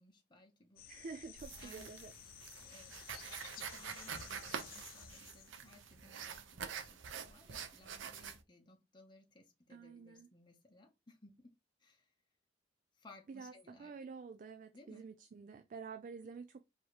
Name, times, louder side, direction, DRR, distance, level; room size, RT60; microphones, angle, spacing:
voice 1, 0.0-0.8 1.6-1.9 2.6-3.0 3.4-11.4 11.8-12.1 13.0-13.9 14.7-15.0, left 2 dB, 25° left, 0.8 m, -61 dB
sound 1, 0.8-5.8, left 10 dB, 50° left, 0.4 m, -54 dB
voice 2, 0.9-2.1 9.7-10.3 13.3-16.6, right 5 dB, 45° right, 0.3 m, -49 dB
sound 2, 1.4-8.4, right 7 dB, 85° right, 0.6 m, -47 dB
4.7 x 2.8 x 2.9 m
head